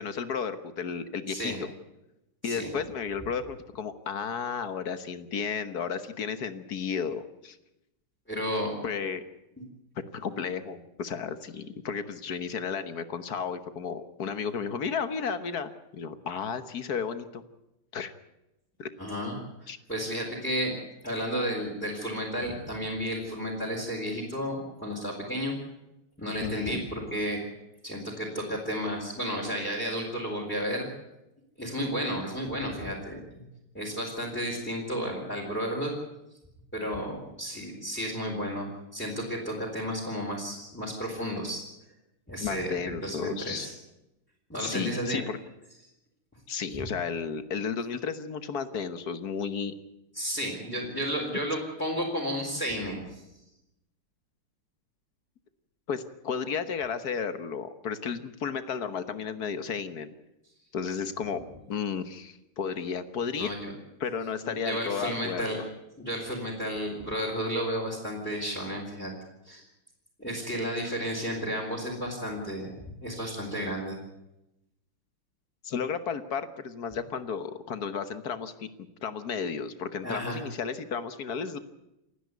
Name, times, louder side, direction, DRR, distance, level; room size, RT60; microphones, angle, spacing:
voice 1, 0.0-1.5 2.4-7.6 8.8-9.2 10.1-17.4 17.9-18.1 18.8-18.9 19.7-19.8 26.4-26.8 42.4-43.7 44.6-45.4 46.5-49.7 55.9-60.1 60.7-63.5 64.0-65.5 75.6-78.7 79.0-81.6, left 6 dB, 50° left, 11 dB, 1.5 m, -33 dB
voice 2, 1.3-1.6 2.4-2.7 8.3-8.8 19.0-19.3 19.6-20.7 21.0-25.5 26.2-27.4 27.8-30.9 31.6-33.4 33.7-35.9 36.7-38.7 38.9-41.6 42.3-43.7 44.5-45.2 46.7-46.8 50.1-53.2 61.2-61.3 63.4-63.7 64.4-65.7 66.0-69.1 69.4-69.6 70.2-74.0 80.0-80.4, equal, 5° left, -3 dB, 3.9 m, -32 dB
28.5 x 10.0 x 9.5 m, 0.90 s
omnidirectional pair, 2.4 m